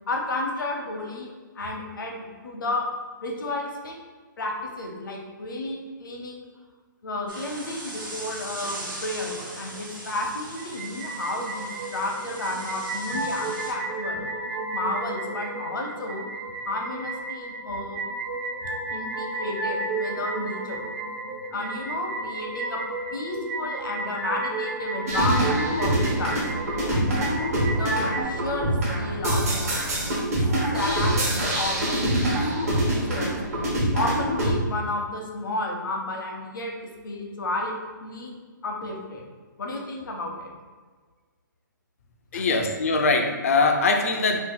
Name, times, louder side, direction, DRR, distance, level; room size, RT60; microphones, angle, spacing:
voice 1, 0.1-1.3 1.5-2.9 3.2-4.0 4.4-6.5 7.0-14.3 14.7-16.2 16.7-18.0 18.6-20.8 21.5-22.8 23.1-26.4 26.9-27.2 27.6-28.7 29.0-29.4 30.7-32.4 32.8-33.4 33.9-36.7 37.0-38.3 38.6-39.2 39.6-40.5 42.3-42.5, left 2 dB, 75° left, 0 dB, 0.8 m, -32 dB
sound 1, 7.3-13.7, right 2 dB, 80° right, 1.1 m, -39 dB
sound 2, 10.6-28.2, right 2 dB, 25° right, 0.4 m, -32 dB
sound 3, 25.1-34.5, right 1 dB, 45° right, 0.9 m, -25 dB
voice 2, 42.3-44.4, left 3 dB, 45° left, 4 dB, 0.4 m, -22 dB
2.8 x 2.4 x 3.8 m, 1.5 s
hypercardioid pair, 170°, 11 cm